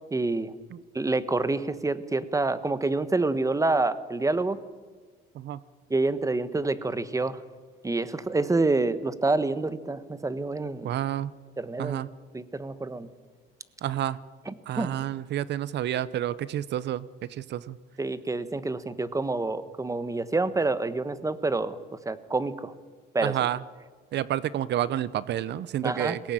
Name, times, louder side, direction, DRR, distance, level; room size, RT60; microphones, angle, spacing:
voice 1, 0.1-0.5 0.9-4.6 5.9-7.4 7.8-10.9 11.6-12.0 12.3-13.1 14.5-15.0 18.0-21.8 22.0-22.7 23.1-23.3 25.8-26.2, right 3 dB, 15° right, 14 dB, 1.3 m, -27 dB
voice 2, 10.8-11.3 11.8-12.1 13.8-14.2 14.7-17.8 23.2-23.6 24.1-26.3, right 12 dB, 55° right, 18 dB, 0.7 m, -29 dB
21.0 x 17.5 x 9.0 m, 1.4 s
supercardioid pair, 90°, 21 cm